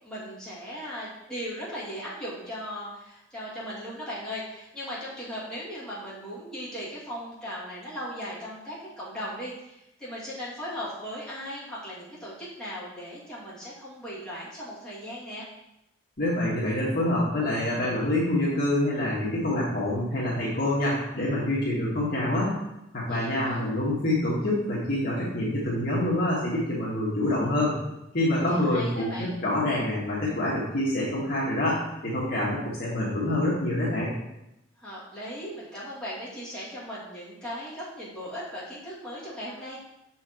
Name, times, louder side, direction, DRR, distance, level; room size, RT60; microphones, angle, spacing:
voice 1, 0.0-15.5 23.1-23.6 28.4-29.4 34.8-39.8, equal, 5° left, -9 dB, 2.3 m, -38 dB
voice 2, 16.2-22.6 22.9-27.7 28.1-34.1, left 1 dB, 55° left, -7 dB, 1.6 m, -26 dB
6.5 x 4.6 x 4.4 m, 0.88 s
head